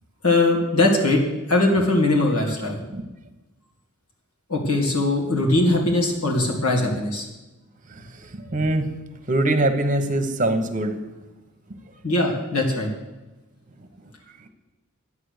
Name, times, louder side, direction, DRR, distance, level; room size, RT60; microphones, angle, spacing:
voice 1, 0.2-1.2 1.5-2.8 4.5-7.3 12.0-12.9, left 2 dB, 80° left, -1 dB, 2.1 m, -20 dB
voice 2, 7.8-8.9 9.3-11.0 11.7-12.0 13.8-14.5, right 1 dB, 35° right, 8 dB, 1.1 m, -24 dB
11.5 x 8.6 x 6.6 m, 1.1 s
head